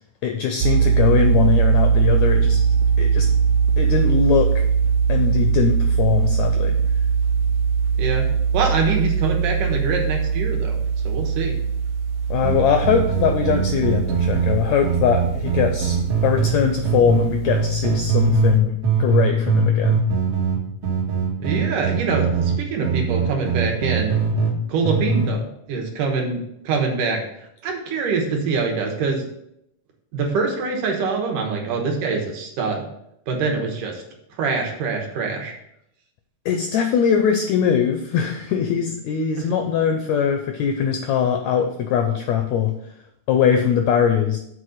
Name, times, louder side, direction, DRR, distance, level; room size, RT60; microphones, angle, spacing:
voice 1, 0.2-2.6 3.0-3.3 3.8-4.5 5.1-6.7 12.3-16.0 16.2-20.0 36.4-42.7 43.3-44.4, left 7 dB, 80° left, 5 dB, 1.6 m, -21 dB
sound 1, 0.6-18.6, right 6 dB, 90° right, 1.5 m, -21 dB
voice 2, 8.5-10.8 11.0-11.6 21.4-24.2 24.7-27.2 27.6-29.3 30.1-32.9 33.3-34.0 34.4-35.5 39.4-39.5, right 4 dB, 70° right, 1 dB, 2.7 m, -24 dB
sound 2, 12.4-16.5 16.8-18.6 18.8-24.5 24.8-25.3, right 5 dB, 55° right, 2.0 m, -21 dB
7.5 x 4.1 x 6.5 m, 0.78 s
omnidirectional pair, 3.9 m